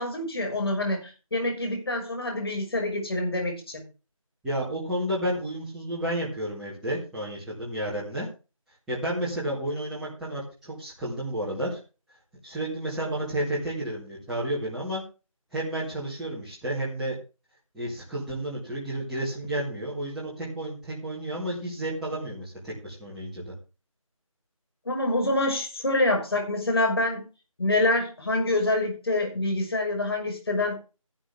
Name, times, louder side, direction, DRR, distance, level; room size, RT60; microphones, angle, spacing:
voice 1, 0.0-3.8 24.9-27.2 27.6-30.7, left 2 dB, 45° left, 2 dB, 5.8 m, -26 dB
voice 2, 4.4-8.3 8.9-11.8 12.4-15.0 15.5-17.1 17.7-23.5, right 1 dB, ahead, -10 dB, 2.1 m, -31 dB
13.0 x 11.5 x 3.6 m, 0.32 s
figure-of-eight pair, 170°, 18 cm